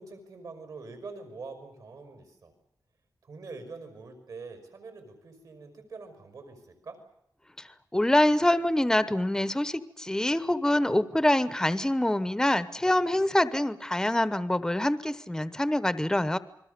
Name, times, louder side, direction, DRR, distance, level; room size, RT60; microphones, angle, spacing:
voice 1, 0.0-2.5 3.2-7.0, right 4 dB, 65° right, 7 dB, 5.6 m, -44 dB
voice 2, 7.6-16.4, left 1 dB, 10° left, 14 dB, 1.0 m, -25 dB
29.0 x 22.0 x 6.8 m, 0.74 s
wide cardioid pair, 155°, 7 cm